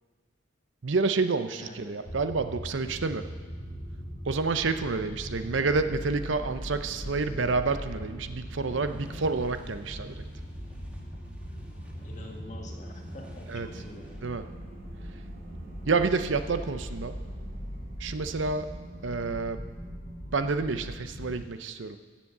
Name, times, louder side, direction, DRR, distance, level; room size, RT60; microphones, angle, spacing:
voice 1, 0.8-3.2 4.3-10.1 13.5-13.7 14.2-14.4 15.9-17.2 18.0-18.7 19.0-19.6 20.3-22.0, right 4 dB, 70° right, 10 dB, 0.7 m, -29 dB
voice 2, 1.5-2.1 12.0-14.3, left 1 dB, 40° left, 1 dB, 1.6 m, -46 dB
sound 1, 2.0-21.4, equal, 70° left, 3.3 m, -41 dB
sound 2, 3.5-20.6, right 1 dB, 50° right, 2.4 m, -48 dB
sound 3, 8.6-14.3, equal, 5° right, 1.4 m, -51 dB
15.5 x 7.4 x 6.7 m, 1.5 s
head